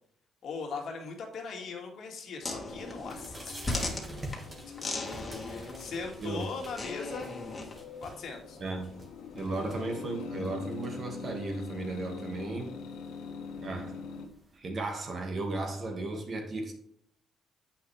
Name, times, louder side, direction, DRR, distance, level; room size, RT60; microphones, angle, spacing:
voice 1, 0.4-3.9 5.4-7.3 8.0-8.6, left 4 dB, 65° left, 2 dB, 2.1 m, -40 dB
sound 1, 2.4-7.8, left 2 dB, 30° left, 2.0 m, -38 dB
sound 2, 2.7-14.6, right 1 dB, 30° right, 2.1 m, -48 dB
sound 3, 3.0-14.3, left 5 dB, 85° left, 1.2 m, -44 dB
voice 2, 8.6-8.9 9.3-12.7 13.6-14.0 14.5-16.7, right 2 dB, 45° right, 3 dB, 2.1 m, -35 dB
8.3 x 5.7 x 3.4 m, 0.69 s
cardioid pair, 90°, 0 cm